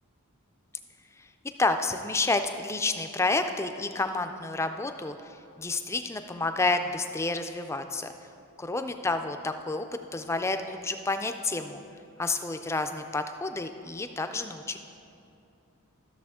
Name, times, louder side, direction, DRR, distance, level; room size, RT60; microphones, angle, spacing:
voice 1, 1.6-5.1 5.6-8.1 8.6-9.9 10.1-11.8 12.2-14.8, left 3 dB, 10° left, 8 dB, 0.3 m, -29 dB
13.5 x 6.7 x 3.6 m, 2.6 s
head